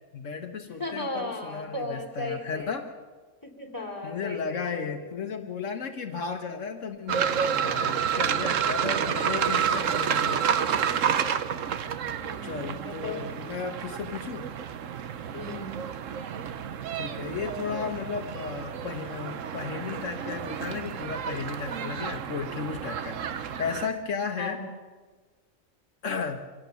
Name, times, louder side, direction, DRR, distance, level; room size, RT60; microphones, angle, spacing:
voice 1, 0.1-2.9 4.0-10.5 12.4-14.5 16.9-24.6 26.0-26.4, left 5 dB, 70° left, 5 dB, 1.5 m, -34 dB
voice 2, 0.8-2.7 3.4-5.1 12.2-13.3 15.3-15.9 24.4-24.7, left 2 dB, 15° left, 0 dB, 3.2 m, -36 dB
sound 1, 7.1-23.9, right 8 dB, 75° right, 1.2 m, -30 dB
25.5 x 17.0 x 7.0 m, 1.4 s
omnidirectional pair, 1.3 m